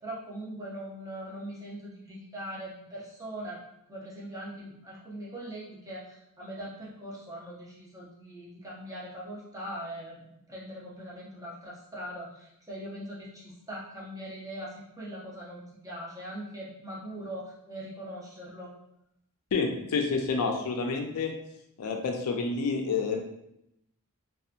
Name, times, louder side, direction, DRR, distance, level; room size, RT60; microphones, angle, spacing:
voice 1, 0.0-3.6 3.9-18.7, right 1 dB, 15° right, -5 dB, 0.6 m, -41 dB
voice 2, 19.5-21.3 21.8-23.2, left 4 dB, 75° left, 3 dB, 0.4 m, -29 dB
2.7 x 2.2 x 2.4 m, 0.80 s
head